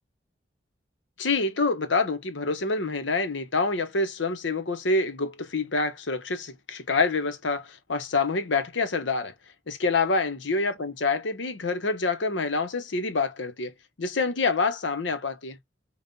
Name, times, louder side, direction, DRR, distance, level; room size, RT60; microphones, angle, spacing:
voice 1, 1.2-9.3 9.7-13.7 14.0-15.6, left 3 dB, 85° left, 0.9 m, -27 dB
5.3 x 2.4 x 2.7 m
head